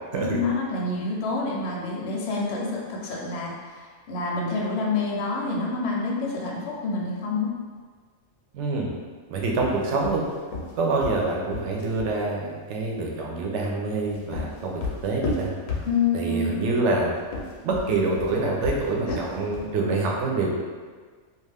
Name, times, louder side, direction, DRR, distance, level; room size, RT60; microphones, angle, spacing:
voice 1, 0.1-7.5 15.9-16.6 19.1-19.2, left 3 dB, 65° left, -3 dB, 0.8 m, -27 dB
voice 2, 8.5-8.9 9.3-10.2 10.8-15.5 16.1-17.1 17.6-20.5, right 3 dB, 70° right, -1 dB, 0.8 m, -26 dB
sound 1, 9.5-12.1 13.8-16.3 17.2-19.8, left 3 dB, 90° left, 1.0 m, -33 dB
2.4 x 2.3 x 3.3 m, 1.6 s
omnidirectional pair, 1.3 m